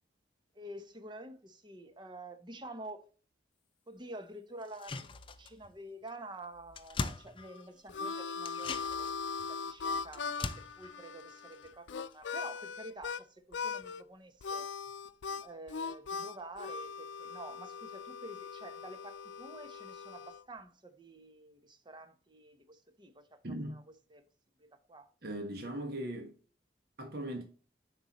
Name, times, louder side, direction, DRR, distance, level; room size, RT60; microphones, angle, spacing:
voice 1, 0.5-3.1 3.9-5.1 5.4-9.1 9.4-14.7 15.4-23.8 24.1-24.2 24.6-25.1, right 1 dB, 25° right, 0.9 m, -49 dB
sound 1, 4.6-5.8 6.1-6.2 6.4-8.0 8.4-12.1 12.4-12.5, left 3 dB, 30° left, 0.5 m, -42 dB
Harmonica, 7.4-13.2 13.5-14.0 14.4-20.4, left 5 dB, 85° left, 0.5 m, -40 dB
voice 2, 23.4-23.8 25.2-26.4 27.0-27.4, right 1 dB, 60° right, 1.4 m, -39 dB
8.0 x 5.4 x 3.0 m
head